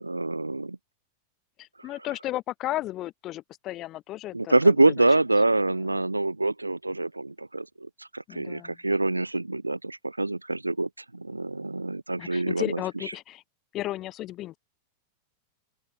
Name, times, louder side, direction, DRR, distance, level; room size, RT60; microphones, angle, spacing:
voice 1, 0.0-0.8 4.3-12.8, right 2 dB, 85° right, 0.3 m, -25 dB
voice 2, 1.6-5.1 8.3-8.8 12.2-13.4 13.7-14.6, left 15 dB, 35° left, 1.9 m, -34 dB
open air
figure-of-eight pair, 90°, 0 cm